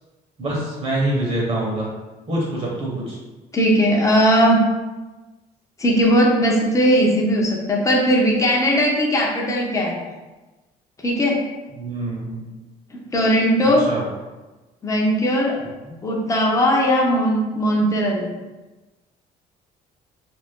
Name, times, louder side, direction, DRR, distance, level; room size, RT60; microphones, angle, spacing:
voice 1, 0.4-1.9 2.3-3.2 11.8-12.5 13.9-14.0 15.8-15.9, right 1 dB, 40° right, -4 dB, 0.9 m, -25 dB
voice 2, 3.5-4.6 5.8-10.0 11.0-11.4 13.1-13.8 14.8-15.6 16.0-18.3, equal, 20° left, -2 dB, 0.6 m, -18 dB
2.5 x 2.3 x 3.5 m, 1.2 s
cardioid pair, 110°, 17 cm